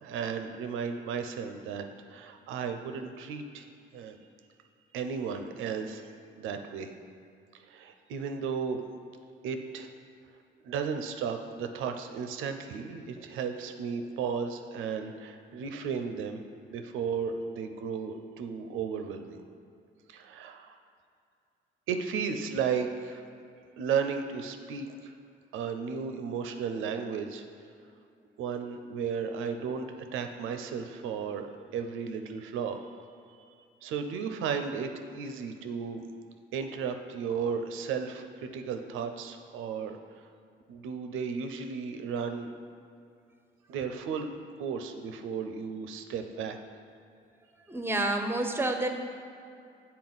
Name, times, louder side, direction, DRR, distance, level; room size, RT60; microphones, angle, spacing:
voice 1, 0.0-3.7 3.9-4.2 4.9-6.1 6.4-6.9 7.5-8.8 9.4-9.9 10.6-16.4 16.7-19.4 20.1-20.8 21.9-23.3 23.8-25.1 25.5-27.4 28.4-32.8 33.5-33.6 33.8-36.0 36.5-40.3 40.7-42.5 43.7-46.6, right 6 dB, 90° right, 6 dB, 0.5 m, -34 dB
voice 2, 47.7-48.9, right 2 dB, 10° right, 4 dB, 0.6 m, -28 dB
7.6 x 4.1 x 4.0 m, 2.5 s
cardioid pair, 90°, 20 cm